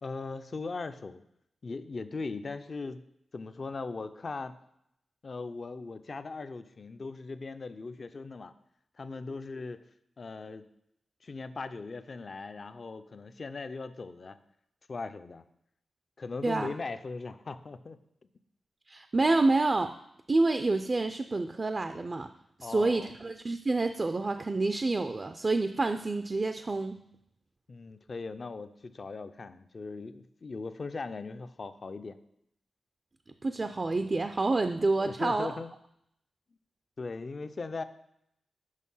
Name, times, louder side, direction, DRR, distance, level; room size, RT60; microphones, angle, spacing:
voice 1, 0.0-1.2 1.6-3.0 3.3-4.5 5.2-8.5 9.0-9.8 10.2-10.7 11.2-14.4 14.9-15.4 16.2-18.0 22.6-23.1 27.7-32.2 35.0-35.7 37.0-37.8, left 3 dB, 50° left, 11 dB, 0.5 m, -39 dB
voice 2, 16.4-16.7 18.9-19.9 20.3-22.3 22.6-27.0 33.4-35.6, right 3 dB, 35° right, 8 dB, 0.4 m, -28 dB
6.5 x 5.5 x 5.5 m, 0.76 s
cardioid pair, 80°, 0 cm